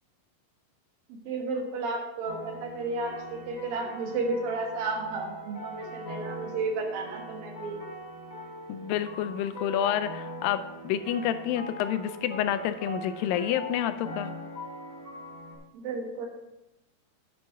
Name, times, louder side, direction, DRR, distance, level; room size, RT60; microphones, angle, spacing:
voice 1, 1.1-7.8 15.7-16.3, right 3 dB, 85° right, 2 dB, 3.2 m, -33 dB
sound 1, 2.3-15.6, right 1 dB, 25° left, 2.7 m, -41 dB
voice 2, 8.7-14.3, left 10 dB, 85° left, 11 dB, 2.3 m, -29 dB
9.2 x 8.6 x 3.5 m, 0.93 s
omnidirectional pair, 4.0 m